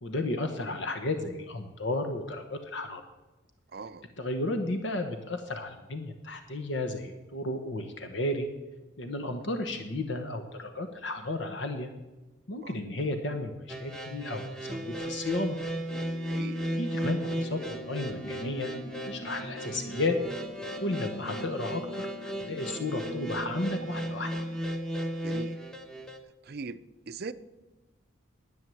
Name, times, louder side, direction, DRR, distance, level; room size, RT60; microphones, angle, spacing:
voice 1, 0.0-3.0 4.2-8.5 9.0-11.9 12.5-15.6 16.7-18.7 19.1-20.1 20.8-24.3, left 2 dB, 65° left, 6 dB, 1.1 m, -33 dB
voice 2, 3.7-4.1 12.6-12.8 16.3-16.6 25.2-25.6 26.4-27.3, right 4 dB, 50° right, 14 dB, 0.5 m, -40 dB
sound 1, 13.7-26.2, equal, 5° left, 1.0 m, -35 dB
sound 2, 15.9-24.6, left 1 dB, 40° left, 0.7 m, -45 dB
sound 3, 17.2-21.7, right 6 dB, 25° left, 2.9 m, -51 dB
11.0 x 9.0 x 7.7 m, 1.1 s
head